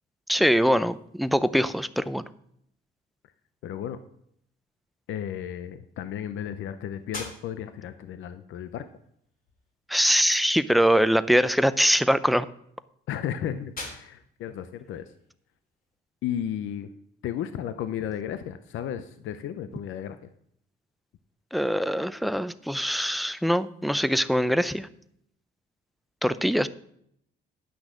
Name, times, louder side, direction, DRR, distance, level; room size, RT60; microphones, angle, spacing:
voice 1, 0.3-2.3 9.9-12.5 21.5-24.9 26.2-26.7, equal, ahead, 15 dB, 0.5 m, -23 dB
voice 2, 3.6-4.0 5.1-8.8 13.1-15.1 16.2-16.9 17.2-20.3, left 10 dB, 80° left, 11 dB, 0.6 m, -34 dB
sound 1, 7.1-16.0, left 2 dB, 45° left, 3.6 m, -47 dB
10.5 x 6.1 x 6.3 m, 0.70 s
cardioid pair, 90°, 20 cm